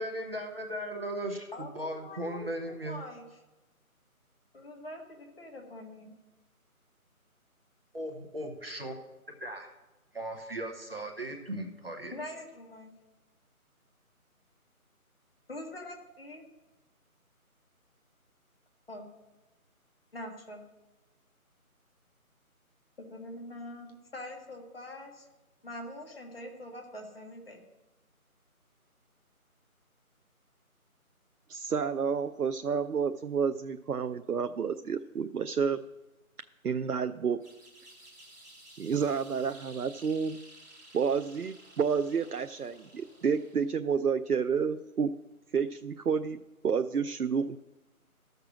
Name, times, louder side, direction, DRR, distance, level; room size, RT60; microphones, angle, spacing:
voice 1, 0.0-3.0 7.9-8.9 9.4-9.7 10.1-12.1, right 1 dB, 40° right, 3 dB, 1.1 m, -37 dB
voice 2, 1.5-3.4 4.5-6.1 12.1-12.9 15.5-16.4 18.9-19.1 20.1-20.6 23.0-25.3 25.6-27.6, left 1 dB, 40° left, 2 dB, 1.7 m, -44 dB
voice 3, 31.5-35.8 36.6-37.4 38.8-40.4 40.9-45.1 45.5-46.4 46.6-47.6, right 6 dB, 85° right, 9 dB, 0.6 m, -30 dB
sound 1, 37.4-43.8, right 1 dB, 10° right, 1.6 m, -54 dB
12.5 x 6.7 x 6.1 m, 1.1 s
figure-of-eight pair, 160°, 44 cm